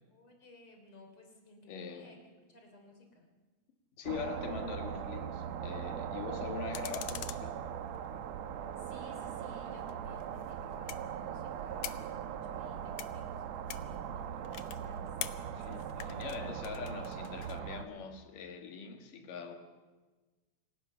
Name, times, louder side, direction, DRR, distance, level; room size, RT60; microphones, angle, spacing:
voice 1, 0.1-2.2 2.5-3.3 8.8-15.1 15.4-15.8, left 1 dB, 35° left, 3.9 m, -56 dB
voice 2, 1.7-2.1 4.0-7.5 15.5-19.6, left 6 dB, 65° left, 3.2 m, -42 dB
sound 1, 4.1-17.9, right 8 dB, 85° right, 1.5 m, -40 dB
sound 2, 6.7-8.3 9.7-17.6, left 12 dB, 80° left, 1.6 m, -46 dB
27.0 x 18.0 x 5.8 m
omnidirectional pair, 4.4 m